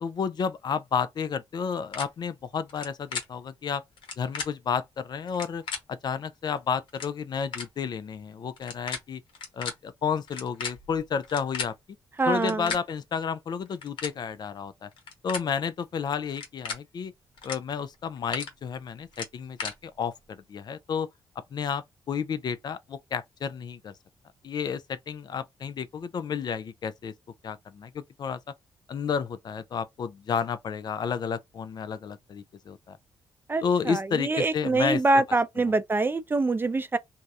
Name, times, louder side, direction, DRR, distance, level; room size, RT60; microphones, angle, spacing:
voice 1, 0.0-3.8 4.2-5.6 5.9-9.2 9.5-11.7 12.3-14.9 15.2-17.1 17.4-21.1 21.5-23.9 24.4-27.1 27.4-28.4 28.9-33.0 33.6-35.2 35.7-35.8, left 6 dB, 55° left, 0.4 m, -31 dB
sound 1, 1.9-2.0 2.7-3.2 4.0-4.5 5.3-5.8 6.6-6.7 6.9-7.1 7.5-7.7 8.6-9.0 9.3-9.7 10.3-11.7 12.4-12.8 13.7-14.1 14.9-15.4 16.3-16.8 17.4-17.6 17.9-18.5 19.1-19.7, left 5 dB, 75° left, 0.9 m, -34 dB
voice 2, 12.2-12.6 33.5-37.0, right 3 dB, 25° right, 0.4 m, -25 dB
2.6 x 2.1 x 2.3 m
cardioid pair, 65°, 9 cm